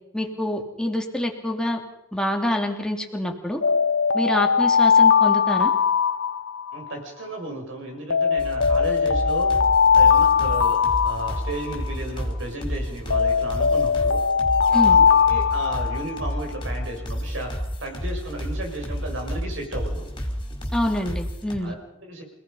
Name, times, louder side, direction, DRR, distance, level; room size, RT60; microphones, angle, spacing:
voice 1, 0.1-1.8 2.1-3.6 4.1-5.7 14.7-15.0 20.7-21.7, left 1 dB, 5° left, 2 dB, 2.8 m, -26 dB
Alarm, 3.6-6.9 8.1-11.9 13.1-16.4, left 6 dB, 75° left, 1.0 m, -20 dB
voice 2, 6.7-9.5 9.9-14.2 14.7-20.0 21.6-22.2, right 1 dB, 70° right, 2 dB, 6.7 m, -34 dB
sound 1, 8.4-21.6, equal, 25° left, 4.9 m, -31 dB
28.5 x 18.0 x 5.6 m, 0.88 s
head